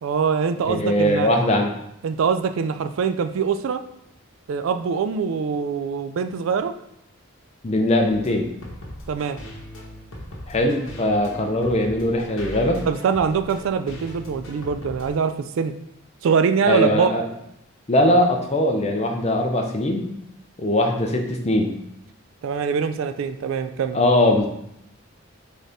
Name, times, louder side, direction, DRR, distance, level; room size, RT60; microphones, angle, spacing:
voice 1, 0.0-1.3 2.0-3.8 4.5-6.7 9.1-9.4 12.9-15.7 16.2-17.1 22.4-24.0, right 6 dB, 70° right, 9 dB, 0.3 m, -23 dB
voice 2, 0.7-1.7 7.6-8.5 10.5-12.8 16.7-17.2 17.9-20.1 20.6-21.7 23.9-24.5, left 1 dB, 30° left, 3 dB, 0.5 m, -20 dB
sound 1, 8.1-15.1, left 1 dB, 70° left, 1.1 m, -39 dB
4.1 x 3.8 x 3.4 m, 0.78 s
head